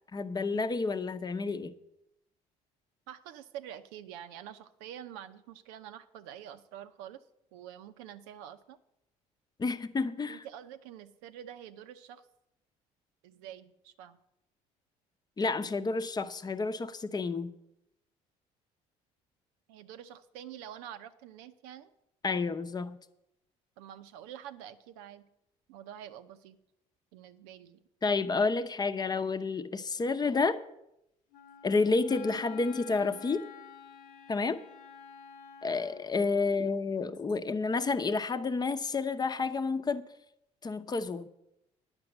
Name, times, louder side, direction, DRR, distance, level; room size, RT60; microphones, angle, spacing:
voice 1, 0.1-1.7 9.6-10.4 15.4-17.5 22.2-23.0 28.0-30.6 31.6-33.5 34.3-34.6 35.6-40.0 40.6-41.3, left 4 dB, 25° left, 0.8 m, -30 dB
voice 2, 3.1-7.2 7.5-8.8 10.3-12.3 13.2-14.2 19.7-21.9 23.8-25.3 25.7-26.6 27.1-27.8, right 10 dB, 90° right, 0.7 m, -47 dB
Wind instrument woodwind instrument, 31.3-36.1, left 8 dB, 70° left, 1.1 m, -50 dB
9.8 x 6.1 x 7.9 m
supercardioid pair, 80°, 16 cm